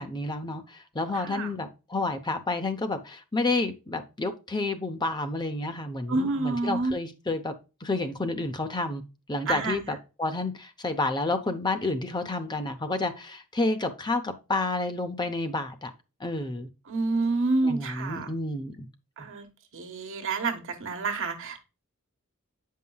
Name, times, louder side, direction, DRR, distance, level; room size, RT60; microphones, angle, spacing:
voice 1, 0.0-7.5 7.8-9.0 9.3-15.9 16.2-16.7 17.6-18.9, left 2 dB, 20° left, 0.7 m, -30 dB
voice 2, 1.1-1.5 6.1-6.9 9.5-9.9 16.9-18.3 19.2-19.5 19.7-21.7, right 3 dB, 60° right, 1.3 m, -28 dB
8.8 x 5.5 x 2.3 m
head